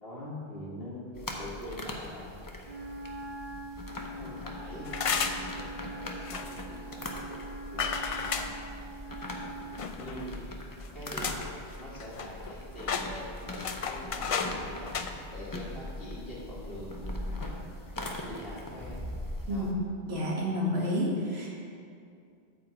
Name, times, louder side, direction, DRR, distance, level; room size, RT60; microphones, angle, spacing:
voice 1, 0.0-2.3 4.2-5.0 6.1-7.0 7.7-8.6 10.0-10.4 10.9-15.0 15.3-17.4 18.3-19.0 19.5-19.7, equal, 70° left, -10 dB, 1.8 m, -43 dB
sound 1, 1.1-19.7, left 1 dB, 20° left, 0.7 m, -41 dB
Wind instrument woodwind instrument, 2.6-9.9, right 2 dB, 50° right, 1.5 m, -43 dB
sound 2, 4.9-5.5 6.3-6.6 7.8-8.5 9.8-10.3 10.8-10.9 11.2-11.5 11.8-12.5 12.8-14.6 14.9-15.1, left 6 dB, 50° left, 0.4 m, -32 dB
voice 2, 20.1-21.5, equal, 80° right, -4 dB, 2.0 m, -30 dB
8.9 x 4.7 x 7.3 m, 2.4 s
omnidirectional pair, 1.1 m